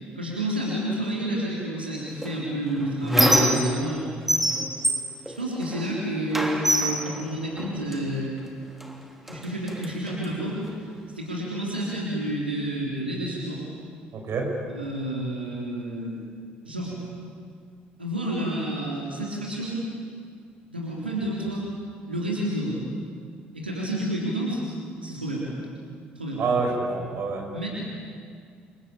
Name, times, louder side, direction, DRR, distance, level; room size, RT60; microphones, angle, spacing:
voice 1, 0.2-4.0 5.3-8.3 9.3-10.6 11.1-13.8 14.7-16.2 16.6-16.9 18.0-19.8 20.7-21.6 22.1-22.8 23.5-24.6 25.0-25.5 26.2-26.4 27.5-27.7, right 1 dB, 90° right, -4 dB, 3.6 m, -29 dB
Squeak, 2.2-4.0 4.3-5.9 6.3-8.0 8.8-8.9 9.3-10.3, equal, 5° right, 3.3 m, -25 dB
voice 2, 14.1-14.5 26.4-27.4, right 4 dB, 50° right, 2 dB, 6.1 m, -26 dB
28.0 x 22.5 x 8.7 m, 2.2 s
figure-of-eight pair, 50°, 5 cm